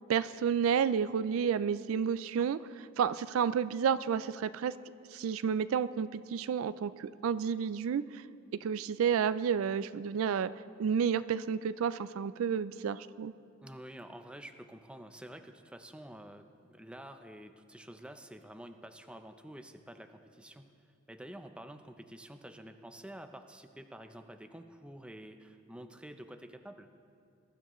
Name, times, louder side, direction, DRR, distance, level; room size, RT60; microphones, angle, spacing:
voice 1, 0.1-4.7 5.1-8.2 8.6-10.5 10.8-13.3, right 7 dB, 80° right, 15 dB, 0.3 m, -31 dB
voice 2, 13.6-20.7 21.1-26.9, right 1 dB, 5° right, 7 dB, 0.5 m, -49 dB
21.5 x 12.5 x 3.1 m, 2.4 s
head